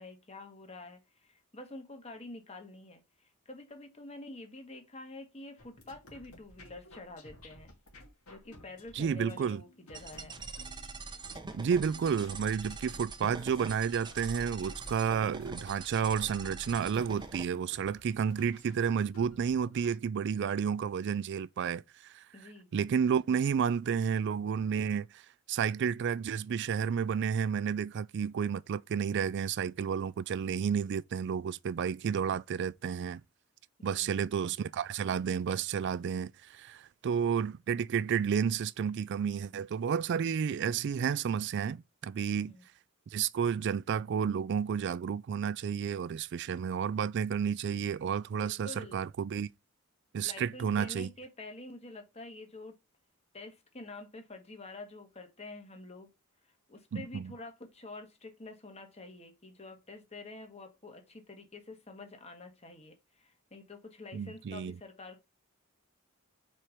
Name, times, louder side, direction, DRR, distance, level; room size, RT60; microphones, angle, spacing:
voice 1, 0.0-7.7 8.3-10.4 22.3-22.7 33.8-34.2 42.3-42.6 48.4-49.0 50.2-52.8 53.3-56.1 56.7-65.2, left 2 dB, 30° left, 1.4 m, -48 dB
sound 1, 5.6-19.9, left 1 dB, 75° left, 2.1 m, -55 dB
voice 2, 8.9-9.6 11.5-22.2 22.7-25.1 25.5-33.2 33.8-42.5 43.1-49.5 50.1-51.1 56.9-57.3 64.1-64.8, right 7 dB, 55° right, 0.3 m, -31 dB
sound 2, 9.9-17.4, right 4 dB, 20° right, 0.7 m, -43 dB
4.7 x 4.3 x 5.1 m
head